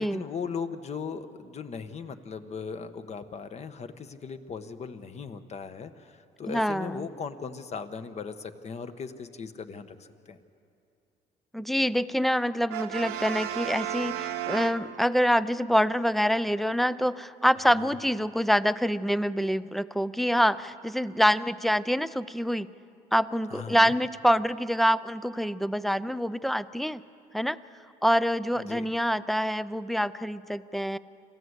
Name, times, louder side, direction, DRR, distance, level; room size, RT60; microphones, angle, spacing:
voice 1, 0.0-10.4 17.5-17.9 23.5-23.9 28.6-28.9, left 5 dB, 40° left, 9 dB, 1.2 m, -38 dB
voice 2, 6.5-7.1 11.5-22.7 23.1-27.0 27.3-27.6 28.0-31.0, equal, ahead, 16 dB, 0.5 m, -26 dB
Brass instrument, 12.7-15.4, right 11 dB, 90° right, 1.1 m, -34 dB
27.0 x 14.5 x 8.2 m, 2.6 s
cardioid pair, 110°, 17 cm